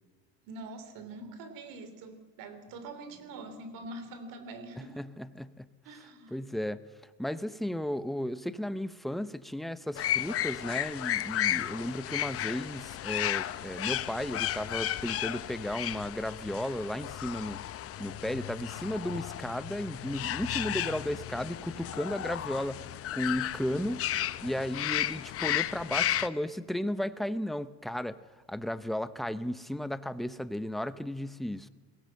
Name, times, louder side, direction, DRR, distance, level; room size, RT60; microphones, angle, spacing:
voice 1, 0.4-5.0 5.8-6.4, right 2 dB, 65° right, 10 dB, 3.3 m, -44 dB
voice 2, 4.8-5.7 6.3-6.8 7.2-17.6 18.0-24.1 24.4-28.2 28.5-31.7, left 1 dB, ahead, 13 dB, 0.7 m, -34 dB
sound 1, 10.0-26.3, left 12 dB, 40° left, 0.7 m, -34 dB
21.0 x 17.0 x 7.7 m, 1.4 s
supercardioid pair, 105°, 36 cm